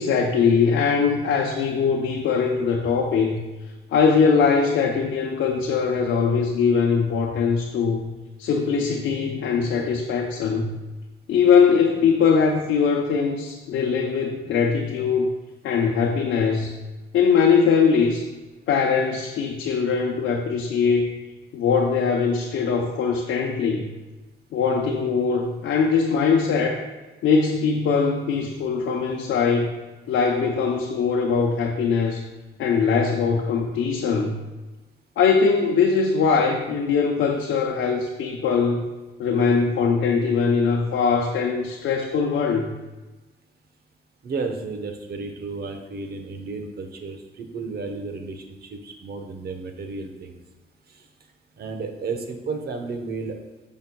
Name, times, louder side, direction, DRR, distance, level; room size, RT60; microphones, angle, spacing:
voice 1, 0.0-3.4 3.9-8.1 8.4-10.7 11.3-15.3 15.6-16.8 17.1-18.3 18.7-21.1 21.5-23.9 24.5-26.9 27.2-29.7 30.1-32.3 32.6-34.3 35.2-38.9 39.2-42.7, left 5 dB, 75° left, 0 dB, 0.7 m, -21 dB
voice 2, 44.2-50.4 51.6-53.3, right 4 dB, 50° right, 5 dB, 1.0 m, -32 dB
10.5 x 5.7 x 2.3 m, 1.2 s
cardioid pair, 90°, 20 cm